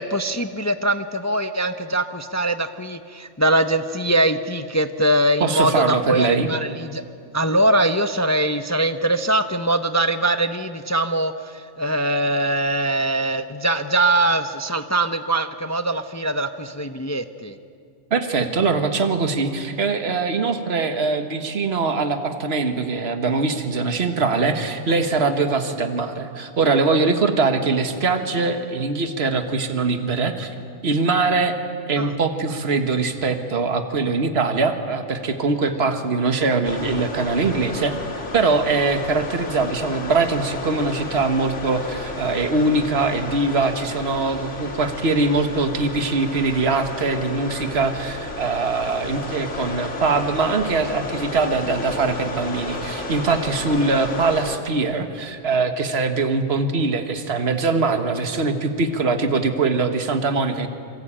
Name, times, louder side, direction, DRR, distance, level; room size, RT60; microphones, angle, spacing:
voice 1, 0.0-7.0 7.3-17.6 32.0-32.1 35.5-36.0, right 1 dB, 15° left, 9 dB, 0.7 m, -22 dB
voice 2, 5.4-6.5 18.1-30.5 30.8-31.6 31.9-38.0 38.3-60.7, right 3 dB, 55° right, 7 dB, 1.8 m, -22 dB
sound 1, 36.6-54.6, left 2 dB, 70° left, 2.5 m, -32 dB
27.0 x 25.0 x 8.9 m, 2.3 s
omnidirectional pair, 1.3 m